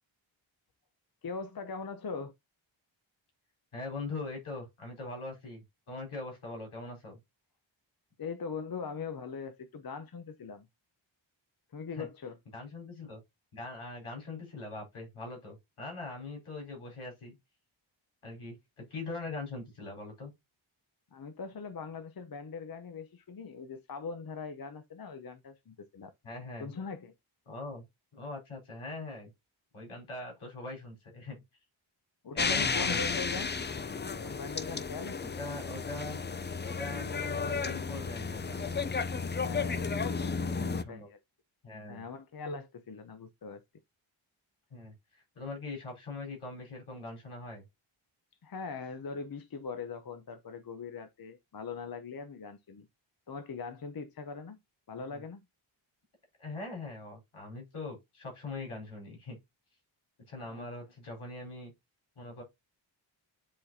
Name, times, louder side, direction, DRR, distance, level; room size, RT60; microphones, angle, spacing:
voice 1, 1.2-2.3 8.2-10.7 11.7-12.4 21.1-26.1 26.6-27.1 32.2-33.5 34.2-35.3 39.3-41.2 41.9-43.6 48.4-52.9 53.3-54.6 54.9-55.4 60.5-60.7, left 5 dB, 45° left, 0.8 m, -41 dB
voice 2, 3.7-7.2 12.0-12.1 12.5-13.2 13.5-17.4 18.2-20.3 26.2-26.7 27.5-27.8 28.1-29.3 29.7-31.4 32.3-33.1 35.2-36.2 36.7-38.7 40.4-41.1 41.6-42.0 44.7-47.6 55.0-55.2 56.4-59.4 60.3-61.7 62.2-62.4, left 2 dB, 85° left, 4.8 m, -42 dB
sound 1, 32.4-40.8, left 5 dB, 25° left, 0.4 m, -33 dB
10.5 x 4.1 x 2.7 m
wide cardioid pair, 155°, 48 cm